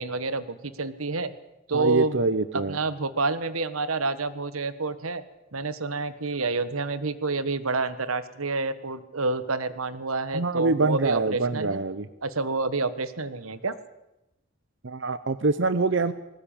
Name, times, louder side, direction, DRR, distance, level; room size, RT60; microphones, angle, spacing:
voice 1, 0.0-1.3 1.7-2.2 2.5-5.2 5.5-11.8 12.2-13.8, right 3 dB, 90° right, 14 dB, 1.4 m, -28 dB
voice 2, 1.7-2.8 10.3-12.1 14.8-16.1, right 3 dB, 60° right, 13 dB, 0.8 m, -25 dB
20.5 x 18.5 x 8.9 m, 0.90 s
head